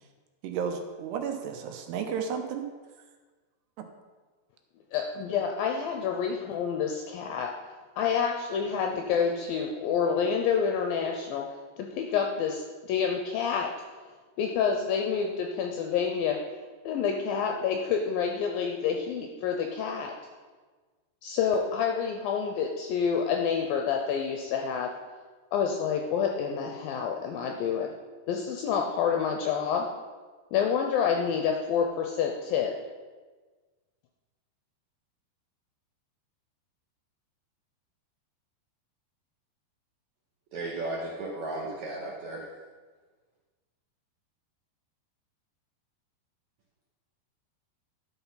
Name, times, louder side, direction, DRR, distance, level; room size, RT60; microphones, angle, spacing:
voice 1, 0.4-2.7 3.8-3.9, right 7 dB, 85° right, 5 dB, 2.9 m, -33 dB
voice 2, 4.9-7.5 8.0-11.4 11.8-13.7 14.4-16.4 16.9-20.1 21.2-24.9 25.5-27.9 28.3-29.9 30.5-32.7, left 7 dB, 80° left, 3 dB, 2.1 m, -28 dB
voice 3, 40.5-42.5, right 2 dB, 65° right, -3 dB, 1.8 m, -35 dB
11.5 x 6.0 x 5.7 m, 1.4 s
omnidirectional pair, 4.9 m